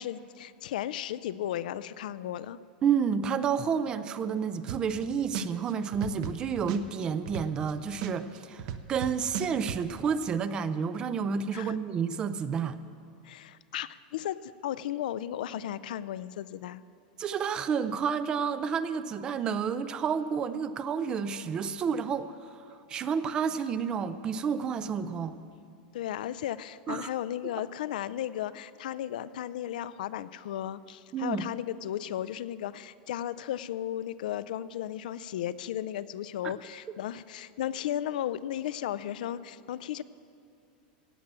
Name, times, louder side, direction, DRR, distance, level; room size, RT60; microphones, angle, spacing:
voice 1, 0.0-2.6 11.5-11.7 13.2-16.8 25.9-40.0, left 11 dB, 70° left, 16 dB, 0.4 m, -35 dB
voice 2, 2.8-8.6 8.9-12.8 17.2-25.4 26.9-27.1 31.1-31.4 36.4-36.5, right 6 dB, 20° right, 13 dB, 0.4 m, -30 dB
sound 1, 4.7-5.0 5.3-7.7 8.0-9.8, right 8 dB, 45° right, 0.7 m, -35 dB
16.0 x 8.7 x 7.4 m, 2.4 s
supercardioid pair, 170°, 5 cm